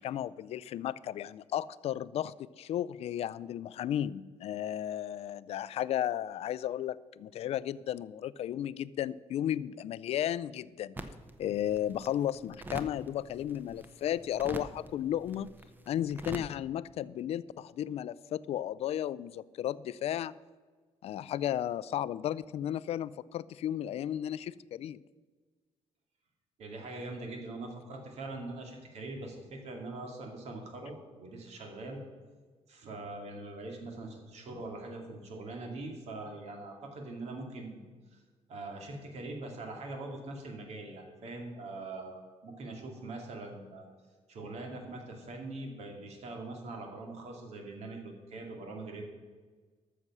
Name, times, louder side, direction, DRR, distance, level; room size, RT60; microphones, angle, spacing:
voice 1, 0.0-10.9 11.4-15.5 15.9-20.3 21.0-25.0, left 11 dB, 60° left, 19 dB, 0.4 m, -34 dB
sound 1, 10.9-16.4, right 2 dB, 15° right, 0.7 m, -46 dB
voice 2, 26.6-32.0 32.7-37.8 38.1-38.2 38.5-43.9 44.3-49.0, right 2 dB, 65° right, 2 dB, 2.4 m, -42 dB
13.5 x 6.7 x 6.1 m, 1.4 s
cardioid pair, 155°, 12 cm